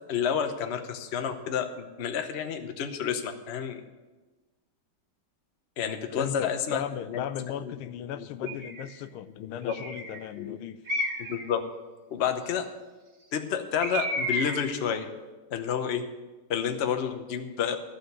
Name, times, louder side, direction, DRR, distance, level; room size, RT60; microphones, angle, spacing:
voice 1, 0.1-3.8 5.8-6.8 7.1-7.2 8.1-8.3 9.4-9.8 10.4-10.6 11.2-11.6 12.1-12.7 13.3-15.1 15.5-16.0 16.5-17.8, left 7 dB, 55° left, 7 dB, 0.7 m, -30 dB
voice 2, 6.1-10.8, left 10 dB, 85° left, 13 dB, 1.5 m, -36 dB
Bird, 8.5-8.9 9.7-10.2 10.9-11.5 13.8-14.8, equal, 60° right, 2.2 m, -32 dB
14.5 x 5.0 x 8.0 m, 1.2 s
omnidirectional pair, 2.3 m